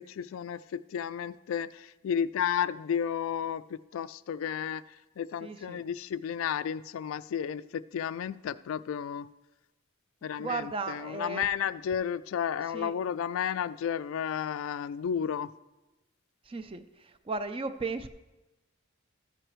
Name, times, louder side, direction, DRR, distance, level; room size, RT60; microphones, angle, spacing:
voice 1, 0.0-4.8 5.2-9.3 10.2-15.5, left 8 dB, 75° left, 15 dB, 0.3 m, -32 dB
voice 2, 5.4-5.8 10.4-11.4 12.7-12.9 16.5-18.1, right 3 dB, 25° right, 11 dB, 0.4 m, -35 dB
14.0 x 7.8 x 3.1 m, 1.1 s
head